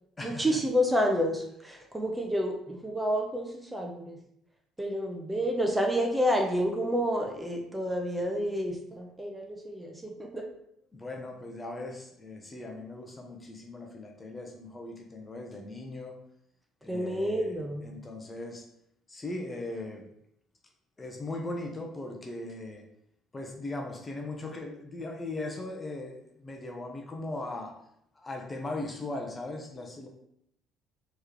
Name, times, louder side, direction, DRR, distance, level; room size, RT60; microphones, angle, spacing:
voice 1, 0.2-4.2 4.8-10.5 16.9-17.9, equal, 10° right, 1 dB, 0.9 m, -29 dB
voice 2, 10.9-16.2 16.8-17.5 17.8-18.6 19.1-20.1 21.0-22.8 23.3-27.7 28.1-30.1, left 2 dB, 25° left, 2 dB, 0.9 m, -39 dB
4.5 x 3.2 x 3.1 m, 0.75 s
hypercardioid pair, 60°, 0 cm